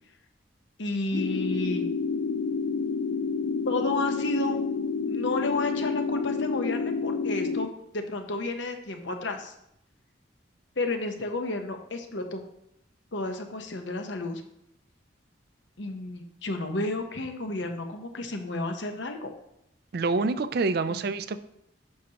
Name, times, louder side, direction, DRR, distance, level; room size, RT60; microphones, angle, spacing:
voice 1, 0.8-1.8 3.6-4.6 5.0-9.5 10.8-12.4 13.1-14.4 15.8-19.3 20.9-21.0, left 2 dB, 65° left, 5 dB, 0.9 m, -32 dB
sound 1, 1.1-7.7, left 4 dB, 90° left, 0.5 m, -29 dB
voice 2, 19.9-21.4, right 3 dB, 50° right, 12 dB, 0.4 m, -26 dB
10.0 x 6.3 x 2.9 m, 0.79 s
head